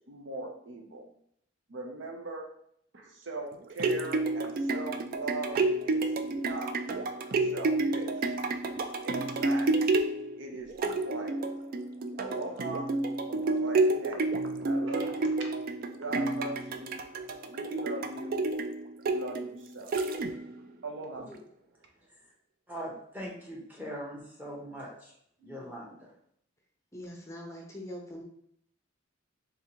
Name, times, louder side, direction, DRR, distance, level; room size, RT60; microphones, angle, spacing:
voice 1, 0.1-1.1 1.7-2.5 2.9-5.6 5.9-6.7 7.4-8.3 9.0-9.7 10.4-11.4 12.2-12.9 13.3-14.3 14.6-15.5 16.0-17.0 17.5-18.4 19.0-19.9 20.8-21.3, right 2 dB, 70° right, 2 dB, 0.7 m, -40 dB
sound 1, 3.5-20.6 21.2-21.3, right 2 dB, 45° right, 0.3 m, -30 dB
voice 2, 22.7-26.1, equal, 10° right, -4 dB, 1.0 m, -42 dB
voice 3, 26.9-28.2, equal, 15° left, 0 dB, 0.6 m, -42 dB
3.6 x 3.4 x 3.0 m, 0.69 s
head